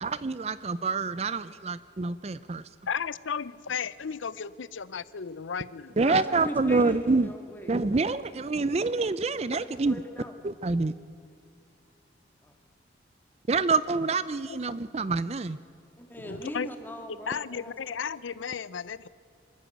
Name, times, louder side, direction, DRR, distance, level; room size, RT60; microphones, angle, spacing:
voice 1, 0.0-2.6 6.0-7.3 7.7-10.0 10.4-10.9 13.5-15.6, right 3 dB, 35° right, 16 dB, 0.4 m, -27 dB
voice 2, 2.9-6.0 14.5-14.6 16.2-16.7 17.3-19.1, left 6 dB, 85° left, 18 dB, 0.6 m, -34 dB
voice 3, 5.9-7.7 9.7-10.4 12.4-12.5 16.0-17.7, equal, 10° left, 5 dB, 2.0 m, -40 dB
24.5 x 14.0 x 9.2 m, 2.4 s
head